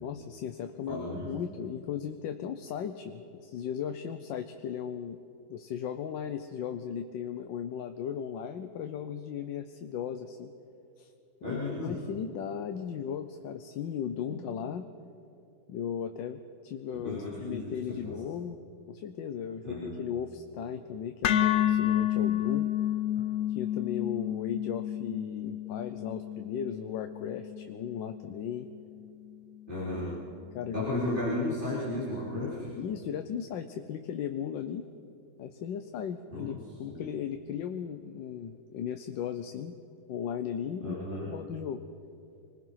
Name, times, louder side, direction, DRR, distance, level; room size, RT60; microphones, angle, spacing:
voice 1, 0.0-5.2 5.5-10.5 11.0-11.1 11.4-14.8 15.7-18.6 18.9-22.7 23.6-28.7 30.5-30.9 32.8-34.9 35.4-39.7 40.1-41.8, left 8 dB, 85° left, 7 dB, 1.5 m, -36 dB
voice 2, 0.9-1.3 11.4-12.0 14.3-14.4 16.9-18.1 19.6-20.0 23.1-23.2 29.7-30.1 30.7-32.7 36.3-36.6 36.9-37.1 40.8-41.3, left 2 dB, 25° right, -9 dB, 4.3 m, -34 dB
sound 1, 21.2-29.3, left 11 dB, 70° left, 0.6 m, -30 dB
26.5 x 20.5 x 5.7 m, 2.6 s
omnidirectional pair, 2.0 m